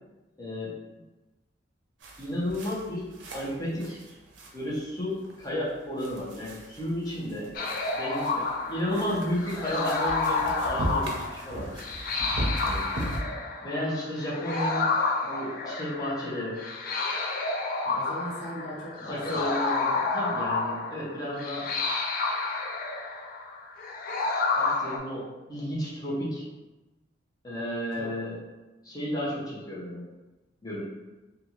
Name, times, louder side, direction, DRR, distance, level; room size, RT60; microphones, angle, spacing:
voice 1, 0.4-0.7 2.2-3.1 3.3-4.0 4.5-7.5 7.9-11.7 12.6-12.8 13.6-14.9 15.2-16.6 19.1-21.7 24.5-26.4 27.4-28.3 28.8-30.0 30.6-30.8, left 1 dB, 20° left, -8 dB, 0.7 m, -32 dB
sound 1, 2.0-13.2, right 1 dB, 70° right, 0.5 m, -38 dB
sound 2, 7.5-25.0, left 3 dB, 50° left, 0.3 m, -30 dB
voice 2, 17.8-19.5 28.0-28.2, equal, 70° left, -5 dB, 0.9 m, -39 dB
2.6 x 2.4 x 2.9 m, 1.1 s
head